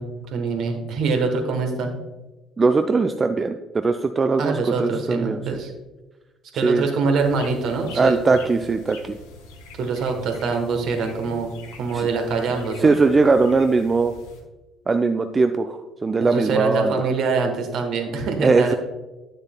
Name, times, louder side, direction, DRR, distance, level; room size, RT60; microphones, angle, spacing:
voice 1, 0.0-2.0 4.4-5.7 6.5-8.2 9.8-11.5 11.8-12.9 16.2-18.7, right 4 dB, 60° right, 4 dB, 1.1 m, -24 dB
voice 2, 2.6-5.4 6.6-6.8 7.9-9.2 11.9-12.1 12.8-14.1 14.9-17.0 18.4-18.7, right 4 dB, 30° right, 8 dB, 0.4 m, -20 dB
sound 1, 7.1-14.4, left 3 dB, 75° left, 1.0 m, -44 dB
9.6 x 6.7 x 2.2 m, 1.1 s
figure-of-eight pair, 50°, 0 cm